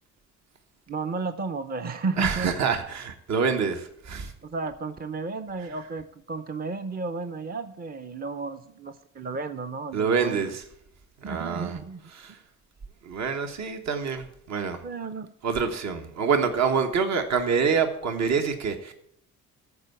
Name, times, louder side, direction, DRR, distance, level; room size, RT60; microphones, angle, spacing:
voice 1, 0.9-2.5 4.4-10.5 11.2-12.0 14.8-15.3, right 4 dB, 30° right, 0.6 m, -33 dB
voice 2, 2.2-4.3 5.6-5.7 9.9-10.6 11.2-11.8 12.1-12.4 13.0-14.8 15.4-18.9, right 5 dB, 60° right, 1.3 m, -26 dB
13.5 x 4.7 x 8.2 m
cardioid pair, 90°, 30 cm